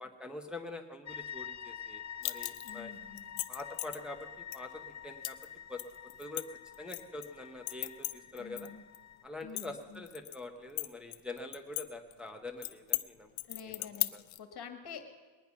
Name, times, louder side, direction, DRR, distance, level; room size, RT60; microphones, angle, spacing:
voice 1, 0.0-2.9 3.5-5.4 5.7-5.8 6.2-6.4 6.8-8.7 9.2-13.3 13.6-14.2, left 2 dB, ahead, 2 dB, 1.0 m, -45 dB
sound 1, 1.1-9.2, left 9 dB, 40° left, 0.5 m, -47 dB
sound 2, 2.2-2.8 3.2-4.0 4.5-4.6 5.2-5.5 5.8-7.3 7.7-8.7 8.9-9.0 9.4-10.4 10.8-11.8 12.1-12.2 12.6-13.0 13.4-14.4, left 17 dB, 80° left, 0.7 m, -36 dB
voice 2, 2.6-3.3 8.4-8.8 9.4-10.0 13.5-14.1 14.4-15.0, left 7 dB, 55° left, 5 dB, 1.7 m, -47 dB
21.0 x 9.7 x 5.8 m, 1.4 s
cardioid pair, 110°, 46 cm